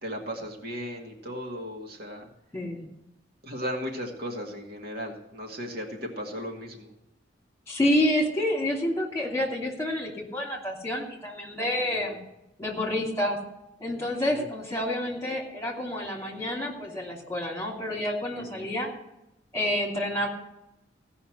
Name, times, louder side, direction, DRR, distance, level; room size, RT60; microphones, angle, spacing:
voice 1, 0.0-2.3 3.4-6.9 11.8-12.1 14.3-14.4 18.4-18.7, equal, 55° right, 0 dB, 2.1 m, -36 dB
voice 2, 7.7-12.2 12.6-13.4 13.8-18.9 19.5-20.3, left 1 dB, 15° left, -1 dB, 2.8 m, -28 dB
16.0 x 5.6 x 7.9 m, 0.87 s
head